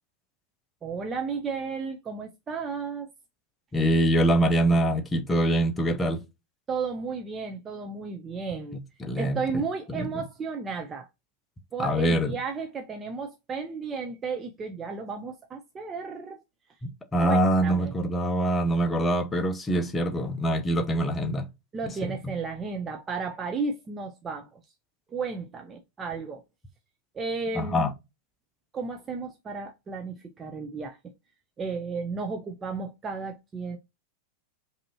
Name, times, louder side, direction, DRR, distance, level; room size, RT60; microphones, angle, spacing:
voice 1, 0.8-3.1 6.7-8.8 9.2-11.1 11.7-16.4 17.2-17.9 21.7-24.6 25.1-26.4 27.1-27.9 28.7-31.0 31.6-33.8, right 4 dB, 20° right, 0.6 m, -33 dB
voice 2, 3.7-6.2 8.7-9.4 9.9-10.2 11.8-12.3 16.8-21.5 22.0-22.1 27.5-27.9, right 1 dB, 15° left, 0.8 m, -24 dB
5.1 x 2.8 x 2.7 m
figure-of-eight pair, 90°, 0 cm